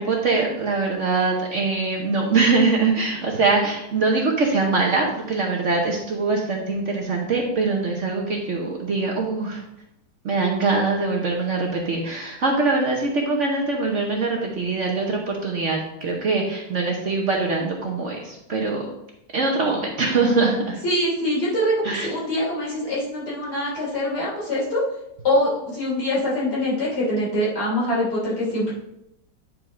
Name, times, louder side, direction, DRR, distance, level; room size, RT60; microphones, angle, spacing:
voice 1, 0.0-9.6 10.2-18.8 19.3-20.8 21.8-22.1, right 3 dB, 50° right, 0 dB, 1.1 m, -23 dB
voice 2, 20.8-24.8 25.2-28.7, left 1 dB, 65° left, -7 dB, 3.6 m, -24 dB
9.5 x 4.7 x 3.7 m, 0.84 s
omnidirectional pair, 1.9 m